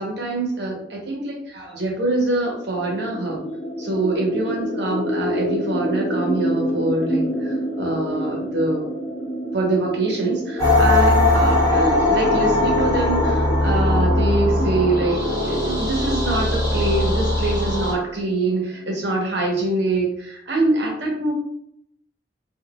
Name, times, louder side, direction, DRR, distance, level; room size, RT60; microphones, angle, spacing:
voice 1, 0.0-3.4 3.8-8.9 9.5-21.3, right 2 dB, 65° right, -1 dB, 0.9 m, -24 dB
sound 1, 2.7-18.4, equal, 45° left, 0.7 m, -28 dB
sound 2, 10.6-17.9, left 2 dB, 15° left, 1.2 m, -20 dB
3.9 x 2.4 x 2.3 m, 0.70 s
head